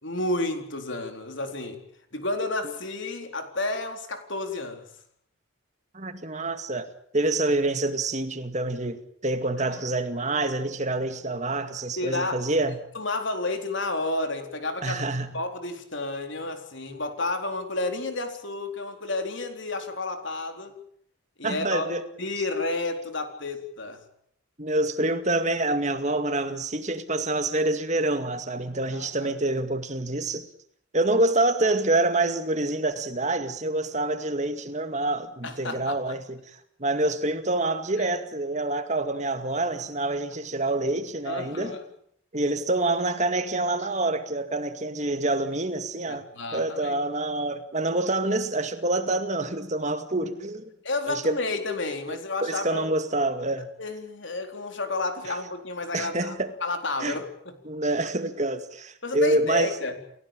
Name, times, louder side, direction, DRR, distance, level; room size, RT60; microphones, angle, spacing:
voice 1, 0.0-1.8 2.1-4.9 9.6-9.7 12.0-12.4 12.9-15.0 15.3-20.8 21.4-21.9 22.2-24.0 28.9-29.3 35.4-36.0 38.0-38.1 41.3-41.8 46.1-47.0 50.8-52.9 53.8-56.3 56.6-57.5 59.0-60.0, left 2 dB, 60° left, 4.2 m, -31 dB
voice 2, 5.9-6.9 7.1-12.8 14.8-15.3 21.4-22.0 24.6-30.5 30.9-41.8 42.3-50.7 51.1-51.4 52.1-53.7 55.3-55.4 55.9-56.5 57.0-57.2 57.7-59.7, right 2 dB, 35° right, 2.2 m, -27 dB
29.5 x 16.5 x 9.1 m
head